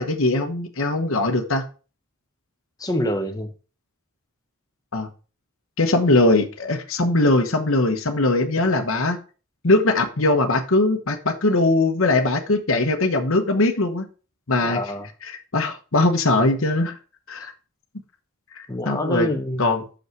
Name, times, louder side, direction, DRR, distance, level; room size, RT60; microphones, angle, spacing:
voice 1, 0.0-1.7 4.9-5.1 5.8-9.2 9.6-14.1 14.5-14.8 15.3-17.0 17.3-17.5 18.6-19.3 19.6-19.8, left 2 dB, 65° left, 1.1 m, -20 dB
voice 2, 2.8-3.5 14.6-15.1 17.4-17.5 18.7-19.7, left 1 dB, 15° left, 1.0 m, -26 dB
6.5 x 5.5 x 4.6 m
head